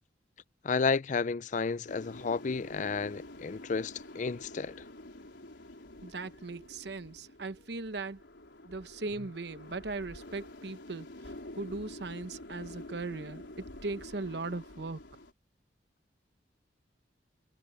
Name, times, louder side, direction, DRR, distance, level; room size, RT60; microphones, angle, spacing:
voice 1, 0.6-4.7, left 4 dB, 40° left, 0.4 m, -32 dB
sound 1, 1.9-15.3, left 1 dB, 85° left, 4.5 m, -48 dB
voice 2, 6.0-8.2 8.6-11.1 11.6-15.0, right 3 dB, 65° right, 0.9 m, -38 dB
head